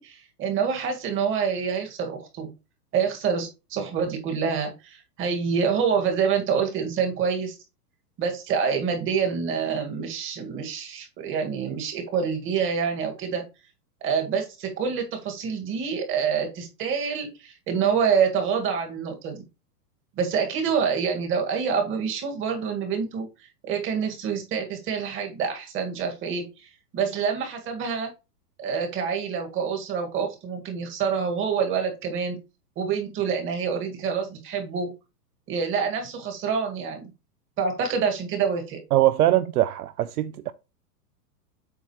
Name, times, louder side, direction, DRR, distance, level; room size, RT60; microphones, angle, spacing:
voice 1, 0.0-2.5 2.9-7.5 8.2-13.4 14.0-19.4 20.2-23.3 23.6-28.1 28.6-32.4 32.8-34.9 35.5-37.1 37.6-38.8, right 6 dB, 25° right, 2.1 m, -27 dB
voice 2, 38.9-40.5, right 14 dB, 70° right, 0.7 m, -22 dB
8.1 x 5.7 x 3.1 m
hypercardioid pair, 145°, 48 cm